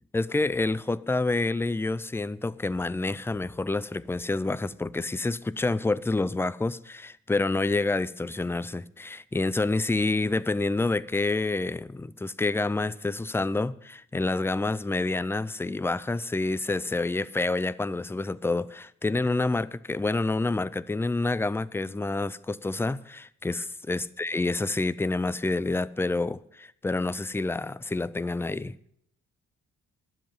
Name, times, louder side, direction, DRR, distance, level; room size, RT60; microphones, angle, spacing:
voice 1, 0.1-28.8, left 2 dB, 10° left, 0.4 m, -28 dB
11.0 x 7.9 x 8.7 m
cardioid pair, 90°, 30 cm